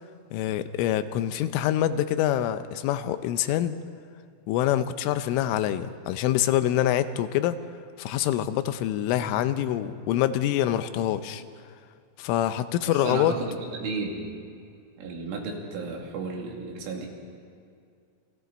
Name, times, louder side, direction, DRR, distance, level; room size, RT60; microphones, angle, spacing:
voice 1, 0.3-3.8 4.5-7.6 8.0-11.4 12.2-13.3, left 12 dB, 90° left, 11 dB, 3.3 m, -25 dB
voice 2, 12.9-14.3 15.0-17.1, right 3 dB, 85° right, 0 dB, 4.9 m, -33 dB
29.0 x 22.5 x 4.1 m, 2.3 s
omnidirectional pair, 5.6 m